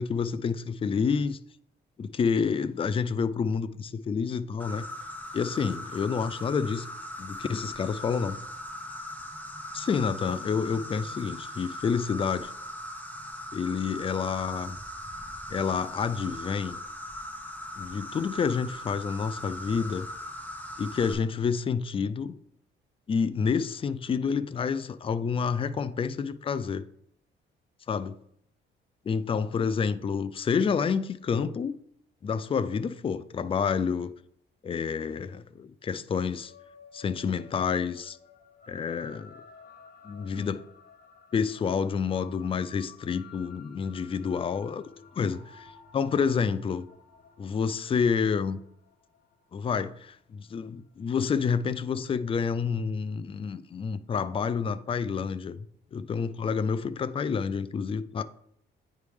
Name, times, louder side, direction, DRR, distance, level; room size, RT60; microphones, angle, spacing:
voice 1, 0.0-1.4 2.0-4.8 5.3-6.9 7.2-8.4 9.7-12.5 13.5-14.8 15.5-16.8 17.8-20.1 20.8-22.4 23.1-26.8 27.9-28.1 29.1-31.8 32.2-34.1 34.6-36.5 36.9-38.2 38.7-39.3 40.0-40.6 41.3-44.8 45.2-46.8 47.4-48.6 49.5-58.2, left 6 dB, 25° left, 0.4 m, -29 dB
Insect, 4.6-21.1, equal, 10° left, 1.2 m, -40 dB
sound 1, 36.2-50.9, left 5 dB, 50° left, 0.9 m, -54 dB
9.2 x 3.2 x 3.5 m
cardioid pair, 90°, 20 cm